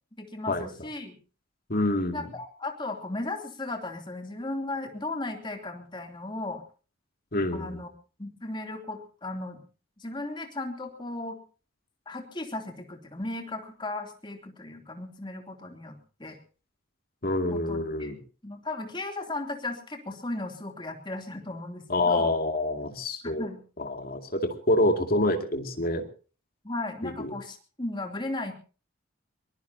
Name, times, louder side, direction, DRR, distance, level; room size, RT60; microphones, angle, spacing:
voice 1, 0.2-1.1 2.1-6.6 7.5-7.9 8.2-9.6 10.0-11.4 12.1-16.4 17.5-18.1 18.4-22.3 23.2-23.6 26.6-28.5, left 2 dB, 20° left, 4 dB, 2.9 m, -36 dB
voice 2, 1.7-2.3 7.3-7.8 17.2-18.2 21.9-23.5 23.8-26.0 27.0-27.3, left 1 dB, 45° left, 5 dB, 2.4 m, -27 dB
23.0 x 20.5 x 2.8 m, 0.37 s
head